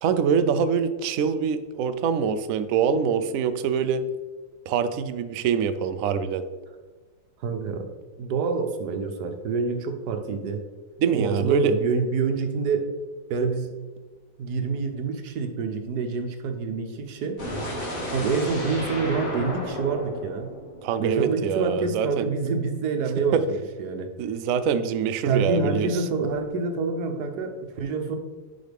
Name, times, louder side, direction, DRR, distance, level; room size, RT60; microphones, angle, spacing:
voice 1, 0.0-4.0 4.7-6.4 11.0-11.7 20.8-22.3 23.3-23.4 24.2-25.9, right 7 dB, 85° right, 10 dB, 0.7 m, -24 dB
voice 2, 7.4-7.9 8.2-10.6 11.1-12.9 13.3-13.7 14.4-17.5 18.1-20.5 21.0-24.1 25.2-28.2, right 4 dB, 65° right, 5 dB, 1.2 m, -27 dB
sound 1, 17.4-21.4, equal, 45° left, 2.3 m, -33 dB
10.5 x 5.0 x 3.5 m, 1.3 s
omnidirectional pair, 2.0 m